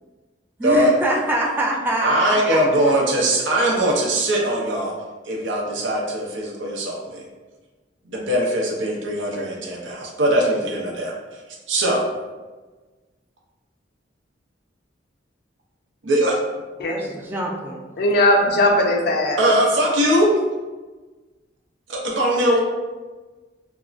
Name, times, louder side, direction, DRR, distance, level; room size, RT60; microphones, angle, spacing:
voice 1, 0.6-2.6 2.9-3.0 16.8-17.9, right 1 dB, 10° right, -3 dB, 0.4 m, -24 dB
voice 2, 2.0-4.9 5.3-7.2 8.1-11.1 11.7-12.1 16.0-16.4 19.4-20.3 21.9-22.6, right 1 dB, 85° right, -2 dB, 0.6 m, -21 dB
voice 3, 18.0-19.4, left 1 dB, 60° left, 1 dB, 0.4 m, -18 dB
3.7 x 2.0 x 2.4 m, 1.3 s
head